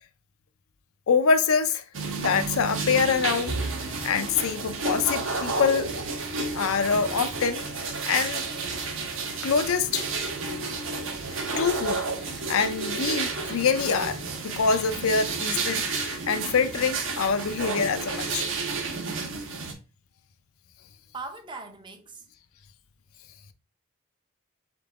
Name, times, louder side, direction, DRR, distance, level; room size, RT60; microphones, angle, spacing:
voice 1, 1.1-1.8 2.2-3.7 4.0-5.9 6.5-8.4 9.4-10.1 11.6-12.0 12.5-18.6, left 5 dB, 75° left, 0.5 m, -25 dB
sound 1, 1.9-19.7, right 3 dB, 60° right, 0.9 m, -31 dB
voice 2, 21.1-22.3, right 3 dB, 20° right, 0.6 m, -39 dB
3.8 x 3.8 x 3.5 m
head